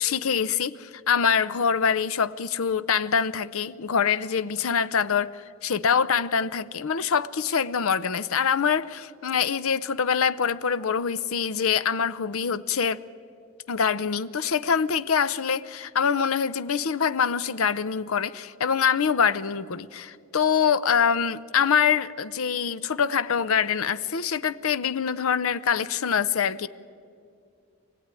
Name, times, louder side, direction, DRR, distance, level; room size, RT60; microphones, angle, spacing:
voice 1, 0.0-13.0 13.7-26.7, left 7 dB, 80° left, 0.6 m, -24 dB
24.5 x 16.5 x 9.7 m
head